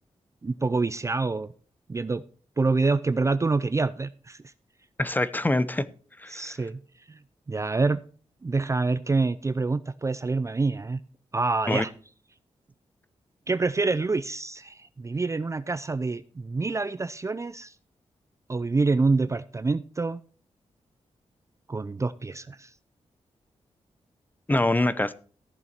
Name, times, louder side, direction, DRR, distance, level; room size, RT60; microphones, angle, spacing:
voice 1, 0.4-1.5 1.9-2.2 2.6-4.5 6.3-6.8 7.1-7.2 7.5-8.0 8.4-11.0 11.3-11.9 13.5-17.7 18.5-20.2 21.7-22.7, right 3 dB, 25° right, 15 dB, 0.5 m, -26 dB
voice 2, 5.0-5.8 6.2-6.5 11.7-11.8 24.5-25.1, left 2 dB, 15° left, 15 dB, 0.7 m, -24 dB
14.5 x 6.9 x 4.5 m, 0.42 s
wide cardioid pair, 100°, 12 cm